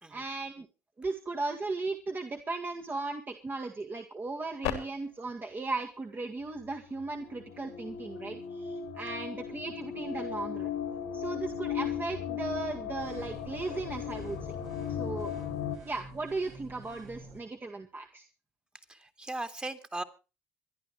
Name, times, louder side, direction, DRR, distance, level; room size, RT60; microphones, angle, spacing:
voice 1, 0.1-0.7 1.0-10.7 11.1-14.5 15.0-15.3 15.9-18.2, right 3 dB, 30° right, 3 dB, 1.9 m, -36 dB
sound 1, 4.6-4.7 6.6-15.8, left 8 dB, 90° left, 2.4 m, -37 dB
sound 2, 13.0-17.4, right 2 dB, 65° right, 4.4 m, -49 dB
voice 2, 18.9-20.0, right 2 dB, 15° right, 8 dB, 2.1 m, -38 dB
26.0 x 11.0 x 3.2 m, 0.32 s
hypercardioid pair, 60°, 7 cm